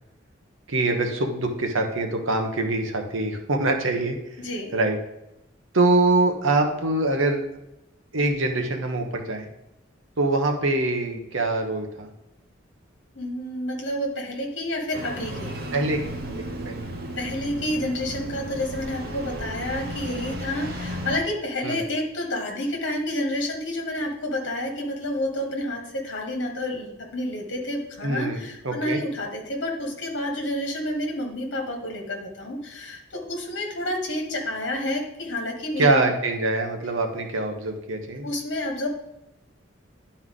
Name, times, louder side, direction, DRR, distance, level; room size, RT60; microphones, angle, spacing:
voice 1, 0.7-4.2 4.7-5.0 5.7-7.5 8.1-9.5 10.2-12.1 15.7-16.0 16.3-16.9 21.6-21.8 28.0-29.0 35.8-38.3, right 2 dB, 80° right, 4 dB, 1.1 m, -24 dB
voice 2, 4.4-4.7 13.1-15.5 17.2-36.1 38.2-38.9, left 1 dB, 60° left, 2 dB, 1.5 m, -29 dB
Engine starting, 14.9-21.2, right 1 dB, 50° right, 1.0 m, -34 dB
11.0 x 4.4 x 3.8 m, 0.88 s
head